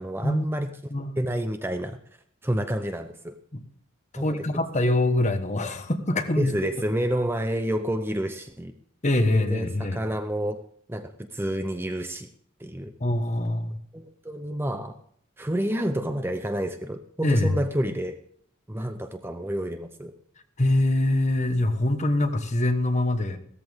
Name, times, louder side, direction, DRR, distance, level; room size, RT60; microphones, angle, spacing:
voice 1, 0.0-0.7 1.2-2.0 2.4-3.4 4.2-4.6 6.4-8.7 9.3-10.6 10.9-12.3 12.6-12.9 13.9-15.0 15.4-18.2 18.7-20.1, equal, 10° right, 8 dB, 0.6 m, -29 dB
voice 2, 4.1-6.5 9.0-10.0 13.0-13.8 17.2-17.6 20.6-23.4, left 1 dB, 35° left, 7 dB, 1.3 m, -24 dB
16.5 x 14.0 x 3.6 m, 0.64 s
head